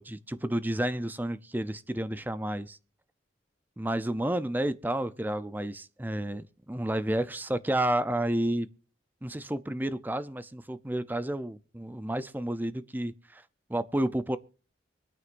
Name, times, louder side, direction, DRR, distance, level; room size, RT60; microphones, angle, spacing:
voice 1, 0.0-2.8 3.8-8.7 9.2-13.4 13.7-14.4, right 1 dB, 10° right, 0.5 m, -31 dB
24.5 x 9.5 x 2.5 m
head